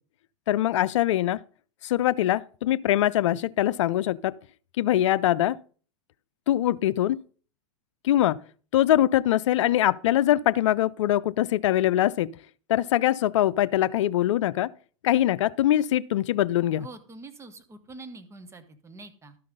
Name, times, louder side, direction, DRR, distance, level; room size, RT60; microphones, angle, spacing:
voice 1, 0.5-1.4 1.8-4.3 4.8-5.6 6.5-7.2 8.0-8.4 8.7-12.3 12.7-14.7 15.0-16.9, left 13 dB, 75° left, 0.5 m, -23 dB
voice 2, 16.8-19.4, right 3 dB, 15° right, 1.4 m, -45 dB
12.5 x 5.7 x 5.2 m
hypercardioid pair, 120°, 16 cm